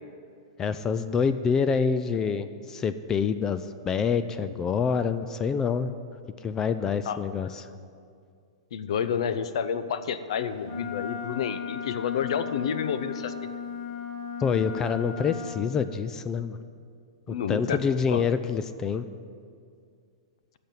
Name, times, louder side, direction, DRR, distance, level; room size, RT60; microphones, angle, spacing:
voice 1, 0.6-5.9 6.4-7.7 14.4-16.6 17.3-19.1, left 6 dB, 15° left, 12 dB, 0.3 m, -26 dB
voice 2, 8.7-13.3 17.3-17.8 18.1-18.2, left 7 dB, 70° left, 12 dB, 0.7 m, -29 dB
Wind instrument woodwind instrument, 10.6-15.6, left 6 dB, 45° left, 2.0 m, -36 dB
10.5 x 6.7 x 9.2 m, 2.3 s
hypercardioid pair, 155°, 3 cm